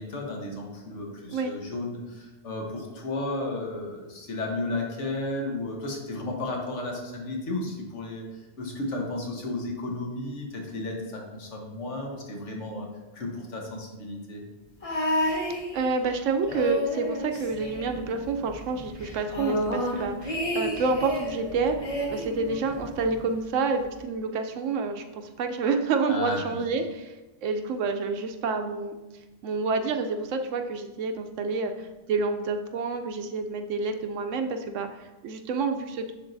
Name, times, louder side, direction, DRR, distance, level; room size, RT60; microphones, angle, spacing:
voice 1, 0.0-12.9 13.1-14.4 26.1-26.4, left 2 dB, 75° left, 0 dB, 1.5 m, -33 dB
sound 1, 14.8-16.1 16.4-18.3 18.6-18.7 19.0-21.4 21.8-23.1 23.9-24.0, equal, 30° left, 0.9 m, -30 dB
voice 2, 15.7-27.1 27.4-29.0 29.4-36.1, right 4 dB, 85° right, 6 dB, 1.0 m, -28 dB
sound 2, 17.4-23.4, right 4 dB, 55° right, 0.4 m, -46 dB
10.0 x 3.7 x 2.6 m, 1.1 s
omnidirectional pair, 1.3 m